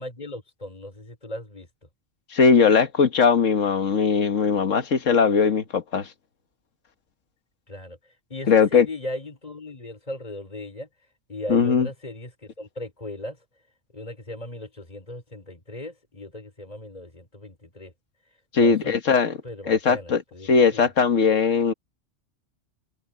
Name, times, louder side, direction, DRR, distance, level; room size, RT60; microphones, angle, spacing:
voice 1, 0.0-1.7 7.7-10.9 11.3-13.4 13.9-17.9 18.6-18.9 19.4-20.9, left 1 dB, 30° left, 4.8 m, -37 dB
voice 2, 2.3-6.1 8.5-8.9 11.5-11.9 18.5-19.4 19.7-20.2 20.5-21.7, left 5 dB, 90° left, 1.8 m, -19 dB
omnidirectional pair, 1.3 m